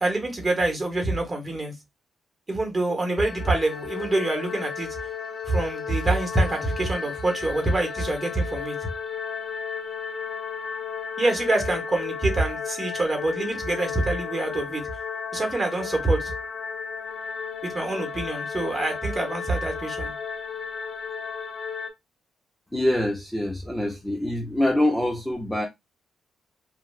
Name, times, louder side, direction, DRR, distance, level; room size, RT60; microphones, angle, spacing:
voice 1, 0.0-1.7 2.5-4.9 5.5-8.8 11.2-14.8 15.3-16.3 17.6-20.1, right 2 dB, 25° right, 1.1 m, -25 dB
sound 1, 3.2-21.9, left 6 dB, 40° left, 0.7 m, -34 dB
voice 2, 22.7-25.7, left 1 dB, 5° left, 0.6 m, -25 dB
3.2 x 2.3 x 2.3 m
cardioid pair, 105°, 0 cm